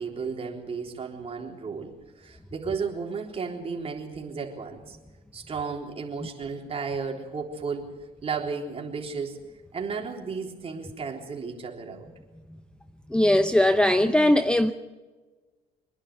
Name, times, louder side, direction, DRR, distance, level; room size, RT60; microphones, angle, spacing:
voice 1, 0.0-5.0 5.3-7.9 8.2-9.4 9.7-12.1, right 5 dB, 35° right, 3.7 m, -33 dB
voice 2, 13.1-14.7, left 1 dB, 5° left, 0.7 m, -20 dB
24.5 x 11.0 x 9.7 m
cardioid pair, 110°, 17 cm